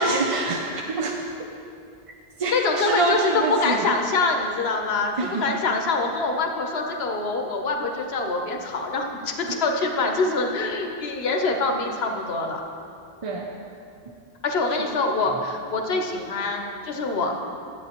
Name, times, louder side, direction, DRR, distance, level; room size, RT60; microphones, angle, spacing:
voice 1, 0.0-1.5 2.4-3.8 5.2-5.5 13.2-13.5 14.8-14.9, right 3 dB, 45° right, 1 dB, 0.5 m, -26 dB
voice 2, 2.5-5.1 5.4-12.6 14.4-17.3, left 3 dB, 75° left, 3 dB, 1.1 m, -25 dB
12.5 x 7.7 x 2.9 m, 2.5 s
omnidirectional pair, 1.1 m